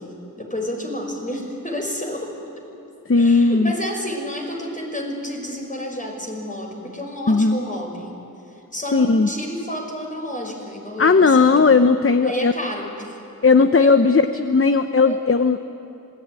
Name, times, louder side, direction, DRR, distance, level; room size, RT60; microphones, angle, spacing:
voice 1, 0.0-2.3 3.1-8.2 8.5-11.8 12.2-13.2 13.8-13.9 14.3-14.4 15.0-15.2, equal, 25° left, 1 dB, 5.8 m, -30 dB
voice 2, 3.1-3.7 7.3-7.6 8.9-9.3 11.0-12.5 13.4-15.6, left 4 dB, 40° left, 9 dB, 0.8 m, -16 dB
26.5 x 19.5 x 9.7 m, 2.9 s
wide cardioid pair, 60°, 34 cm